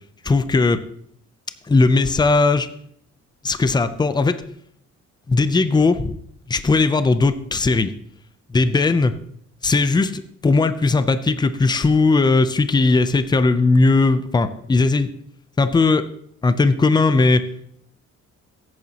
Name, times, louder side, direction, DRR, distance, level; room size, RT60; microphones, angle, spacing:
voice 1, 0.2-0.8 1.7-2.7 3.4-4.4 5.3-6.2 6.5-7.9 8.5-9.1 9.6-15.1 15.6-16.0 16.4-17.4, left 3 dB, 15° left, 11 dB, 0.5 m, -18 dB
16.0 x 9.2 x 2.9 m, 0.67 s
cardioid pair, 150°, 29 cm